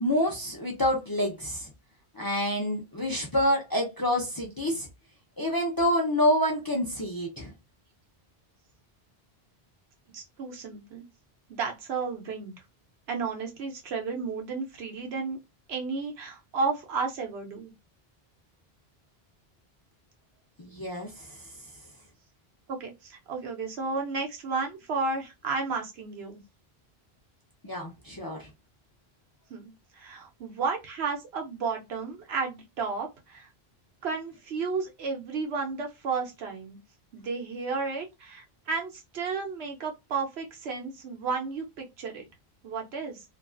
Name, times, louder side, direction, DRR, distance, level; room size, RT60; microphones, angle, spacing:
voice 1, 0.0-1.7 2.1-4.9 5.4-7.5 20.6-21.4 27.6-28.5, left 1 dB, 30° left, 0.4 m, -27 dB
voice 2, 10.1-11.0 11.5-12.5 13.1-15.4 15.7-17.7 22.7-26.4 29.5-33.5 34.0-36.8 37.1-42.2 42.6-43.2, right 4 dB, 85° right, 1.0 m, -33 dB
2.5 x 2.3 x 2.3 m
omnidirectional pair, 1.0 m